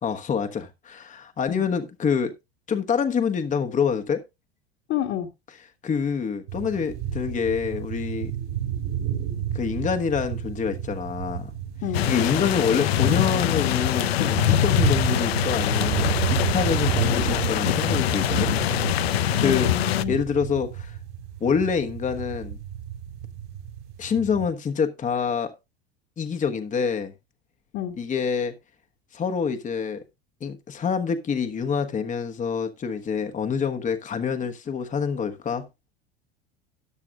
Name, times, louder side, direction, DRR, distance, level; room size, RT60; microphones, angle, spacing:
voice 1, 0.0-2.3 2.7-4.2 5.8-8.3 9.5-11.5 12.1-18.5 19.4-19.7 20.1-21.0 21.4-22.6 24.0-25.5 26.2-27.1 28.0-28.5 29.1-30.0 30.4-35.7, left 6 dB, 25° left, 1.1 m, -26 dB
voice 2, 4.9-5.3 11.8-12.0 19.4-20.1 24.4-24.5 27.7-28.0, left 11 dB, 50° left, 1.7 m, -29 dB
sound 1, 6.5-24.5, right 10 dB, 70° right, 4.6 m, -31 dB
sound 2, 11.9-20.0, left 13 dB, 80° left, 0.7 m, -24 dB
14.0 x 9.6 x 2.4 m
hypercardioid pair, 85°, 30 cm